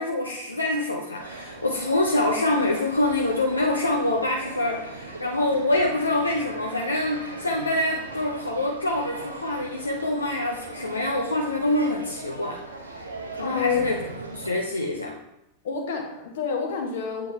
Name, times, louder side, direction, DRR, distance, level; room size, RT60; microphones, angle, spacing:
voice 1, 0.0-12.6 12.9-13.0 13.3-13.9 14.3-15.2, left 1 dB, 80° left, 0 dB, 0.6 m, -25 dB
sound 1, 1.1-14.5, right 2 dB, 80° right, 0.8 m, -39 dB
voice 2, 13.4-13.8 15.6-17.3, left 6 dB, 55° left, 2 dB, 1.3 m, -28 dB
8.6 x 3.8 x 3.4 m, 0.87 s
figure-of-eight pair, 90°, 0 cm